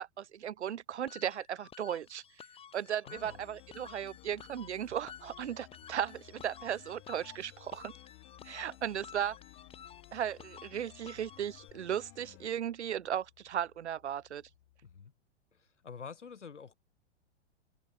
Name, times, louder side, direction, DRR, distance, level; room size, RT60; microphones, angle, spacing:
voice 1, 0.0-2.2 2.7-7.9 8.4-9.4 10.1-14.4, right 9 dB, 70° right, 0.9 m, -36 dB
sound 1, 1.1-11.7, left 8 dB, 15° left, 1.5 m, -53 dB
voice 2, 3.0-3.4 14.8-15.1 15.5-16.7, left 6 dB, 90° left, 0.9 m, -48 dB
sound 2, 3.2-12.5, left 26 dB, 35° left, 3.7 m, -56 dB
sound 3, 5.0-15.0, left 14 dB, 55° left, 6.2 m, -69 dB
figure-of-eight pair, 105°, 35 cm